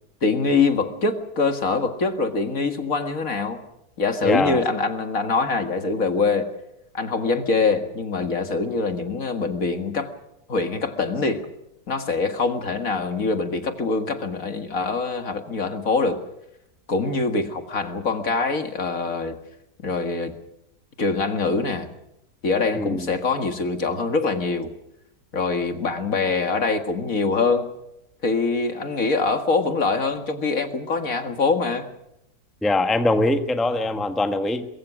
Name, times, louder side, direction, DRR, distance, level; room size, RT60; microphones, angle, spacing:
voice 1, 0.2-3.6 4.0-6.5 6.9-10.1 10.5-11.5 11.9-16.2 16.9-19.4 19.8-20.3 21.0-21.9 22.4-24.7 25.3-27.7 28.2-31.9, left 4 dB, 50° left, 7 dB, 2.2 m, -24 dB
voice 2, 4.2-4.6 22.7-23.1 32.6-34.7, left 2 dB, ahead, 7 dB, 1.2 m, -22 dB
23.5 x 23.0 x 6.1 m, 0.85 s
omnidirectional pair, 1.8 m